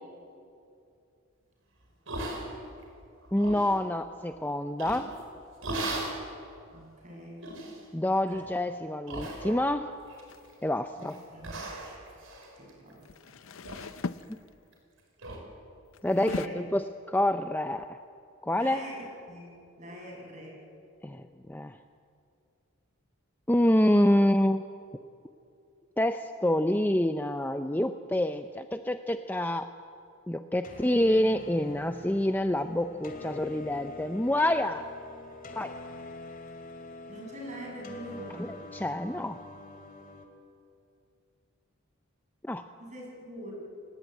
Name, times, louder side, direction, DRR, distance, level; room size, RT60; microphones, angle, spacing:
sound 1, 2.1-2.8 3.2-3.7 4.8-5.2 5.6-6.2 6.7-6.8 7.4-7.8 8.2-8.5 9.1-9.8 10.1-10.6 11.0-11.2 11.4-13.3 13.6-13.9 14.2-14.3 14.7-14.8 15.2-15.4, right 2 dB, 65° right, 5.3 m, -37 dB
voice 1, 3.3-5.1 7.9-9.9 10.6-11.1 14.3-14.4 16.0-17.9 18.4-18.8 21.0-21.2 21.5-21.8 23.5-24.6 26.0-29.7 30.3-34.9 35.6-35.7 38.7-39.4 42.5-42.6, left 1 dB, 10° left, 8 dB, 0.5 m, -27 dB
voice 2, 6.7-7.6 11.0-11.6 12.6-13.4 16.2-16.6 18.6-20.6 30.7-30.9 37.1-38.6 42.8-43.5, equal, 35° right, 0 dB, 7.2 m, -44 dB
sound 2, 10.3-10.5 12.9-14.8 15.9-16.5, left 4 dB, 65° left, 0.6 m, -38 dB
sound 3, 30.6-40.2, left 2 dB, 40° left, 2.8 m, -45 dB
29.5 x 19.0 x 9.2 m, 2.5 s
head